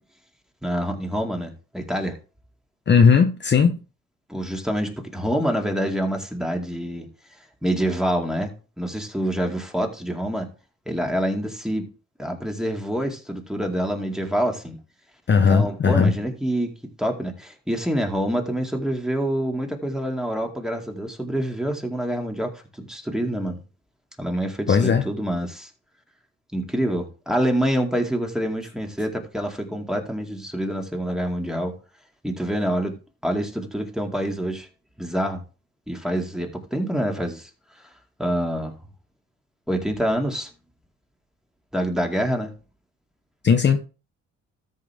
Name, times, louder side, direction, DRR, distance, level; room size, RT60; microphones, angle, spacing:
voice 1, 0.6-2.2 4.3-7.1 7.6-10.5 10.9-11.9 12.2-14.8 15.3-16.7 17.0-22.5 22.8-23.6 24.2-25.7 26.5-31.7 32.2-32.9 33.2-34.7 35.0-35.4 35.9-37.5 38.2-38.8 39.7-40.5 41.7-42.5, equal, ahead, 2.3 m, -26 dB
voice 2, 2.9-3.8 15.3-16.1 24.7-25.1 43.4-43.8, left 6 dB, 35° left, 0.9 m, -17 dB
13.5 x 5.5 x 3.5 m
cardioid pair, 90°, 30 cm